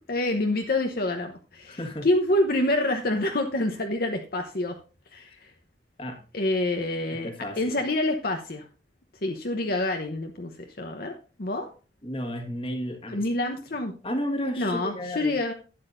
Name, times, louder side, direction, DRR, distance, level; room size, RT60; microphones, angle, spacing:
voice 1, 0.1-4.8 5.1-5.5 6.3-8.6 9.2-11.1 11.4-11.7 13.1-13.9 14.6-15.5, left 1 dB, 55° left, 3 dB, 1.0 m, -27 dB
voice 2, 1.7-2.1 6.0-6.2 7.1-7.8 12.0-13.3 14.0-15.4, equal, 30° left, 5 dB, 1.6 m, -32 dB
12.0 x 9.5 x 2.6 m, 0.34 s
head